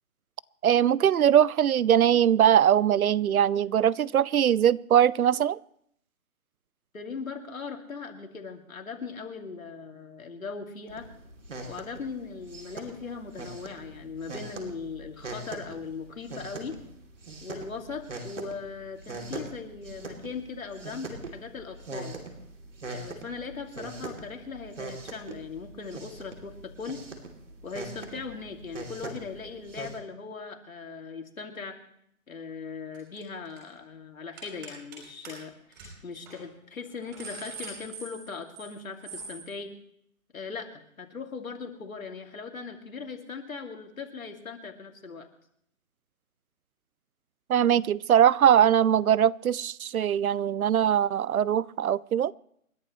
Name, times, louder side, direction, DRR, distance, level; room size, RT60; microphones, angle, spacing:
voice 1, 0.6-5.6 47.5-52.3, right 9 dB, 85° right, 24 dB, 0.6 m, -21 dB
voice 2, 6.9-11.1 11.7-16.8 17.4-22.1 22.9-27.0 27.6-31.7 32.3-39.7 40.3-40.7 41.0-45.3, left 5 dB, 70° left, 3 dB, 2.6 m, -39 dB
sound 1, 10.9-30.0, right 2 dB, 60° right, 2.9 m, -42 dB
sound 2, 32.9-33.2 33.4-33.7 34.4-35.0 35.2-35.3 35.7-35.9 36.3-36.4 36.8-38.7 39.0-39.4, right 4 dB, 15° right, 3.8 m, -42 dB
28.5 x 11.0 x 3.1 m, 0.71 s
hypercardioid pair, 170°, 42 cm